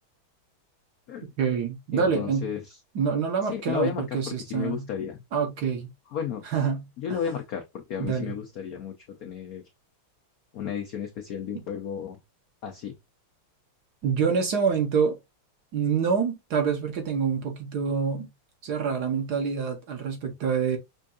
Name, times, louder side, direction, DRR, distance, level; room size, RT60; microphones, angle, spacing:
voice 1, 1.4-2.5 2.9-4.9 5.3-5.9 6.4-7.2 8.0-8.3 14.0-15.2 15.7-18.3 18.6-20.8, right 6 dB, 60° right, 1.3 m, -26 dB
voice 2, 1.9-2.8 3.4-5.2 6.1-6.4 7.0-8.9 9.2-9.6 10.5-12.2 12.6-13.0, left 8 dB, 80° left, 0.8 m, -33 dB
5.5 x 2.6 x 2.3 m
omnidirectional pair, 2.3 m